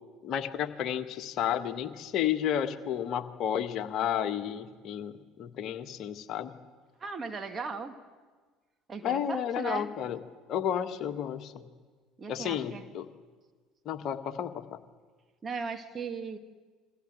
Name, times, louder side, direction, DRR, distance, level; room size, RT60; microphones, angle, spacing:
voice 1, 0.2-6.5 9.0-10.2 10.5-11.5 12.3-13.1 13.9-14.8, left 9 dB, 45° left, 8 dB, 1.7 m, -32 dB
voice 2, 7.0-8.0 8.9-9.9 12.2-12.8 15.4-16.4, right 5 dB, 25° right, 6 dB, 2.2 m, -37 dB
29.0 x 24.0 x 8.1 m, 1.4 s
figure-of-eight pair, 60°, 0 cm